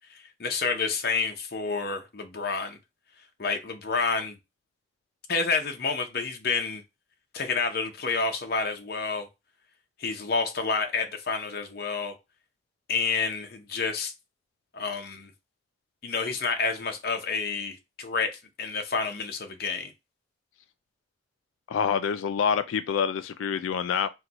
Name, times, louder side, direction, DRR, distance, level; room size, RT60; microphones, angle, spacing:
voice 1, 0.4-2.8 3.4-4.4 5.3-6.8 7.3-9.3 10.0-12.1 12.9-14.1 14.7-15.3 16.0-19.9, left 4 dB, 50° left, 0.7 m, -29 dB
voice 2, 21.7-24.1, left 7 dB, 85° left, 0.3 m, -26 dB
4.4 x 2.3 x 3.9 m
head